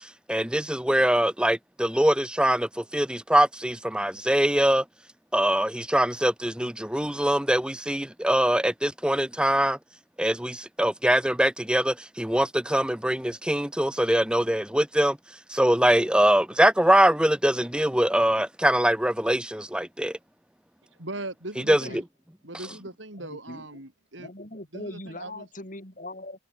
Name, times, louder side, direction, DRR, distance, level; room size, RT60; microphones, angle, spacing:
voice 1, 0.3-4.8 5.3-9.8 10.2-15.2 15.5-20.1 21.7-21.8, right 1 dB, 5° right, 1.1 m, -23 dB
voice 2, 21.0-22.0 22.4-24.3 24.7-25.5, right 2 dB, 80° right, 7.3 m, -39 dB
voice 3, 23.2-23.7 24.2-26.4, left 1 dB, 45° left, 7.1 m, -40 dB
head